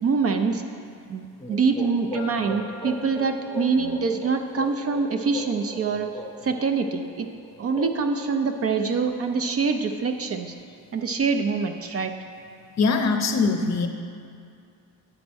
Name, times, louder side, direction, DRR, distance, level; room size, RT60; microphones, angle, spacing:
voice 1, 0.0-0.6 1.1-6.1 6.4-7.3 7.6-10.5 10.9-12.1, right 5 dB, 40° right, 6 dB, 0.4 m, -25 dB
sound 1, 1.4-9.1, left 1 dB, 15° left, 0.9 m, -39 dB
Piano, 2.1-4.0, left 3 dB, 70° right, 1.2 m, -46 dB
voice 2, 12.8-13.9, left 4 dB, 45° left, 5 dB, 0.6 m, -22 dB
8.9 x 4.2 x 6.2 m, 2.4 s
cardioid pair, 110°, 39 cm